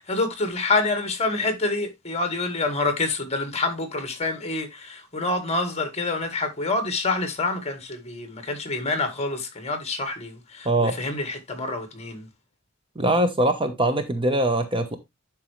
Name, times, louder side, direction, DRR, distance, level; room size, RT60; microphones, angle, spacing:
voice 1, 0.0-12.3, left 3 dB, 30° left, 1.8 m, -27 dB
voice 2, 10.6-11.0 13.0-15.0, right 1 dB, 25° right, 1.0 m, -22 dB
11.0 x 4.6 x 3.2 m
head